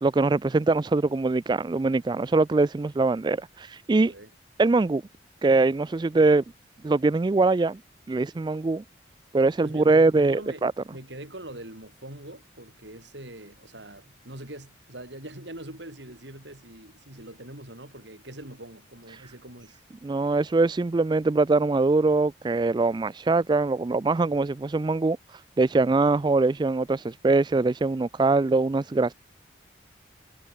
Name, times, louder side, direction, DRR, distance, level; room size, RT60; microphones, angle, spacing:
voice 1, 0.0-4.1 4.6-5.0 5.4-6.4 6.8-7.8 8.1-8.8 9.3-10.7 20.0-29.1, right 3 dB, 25° right, 0.3 m, -23 dB
voice 2, 3.9-4.3 9.6-10.7 10.9-19.8, right 1 dB, 70° right, 7.1 m, -43 dB
head